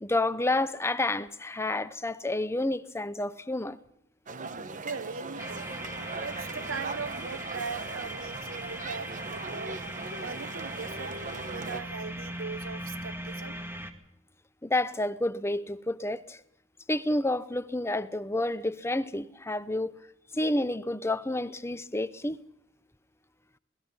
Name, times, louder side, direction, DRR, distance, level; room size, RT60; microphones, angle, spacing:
voice 1, 0.0-3.8 14.6-16.4 16.9-19.9 20.3-22.4, left 2 dB, 15° left, 0.8 m, -29 dB
sound 1, 4.3-11.8, right 3 dB, 40° right, 1.1 m, -39 dB
voice 2, 4.8-5.8 6.2-9.8 10.2-13.6, right 5 dB, 85° right, 1.1 m, -40 dB
sound 2, 5.4-13.9, right 1 dB, 10° right, 2.2 m, -39 dB
27.5 x 19.0 x 5.5 m
head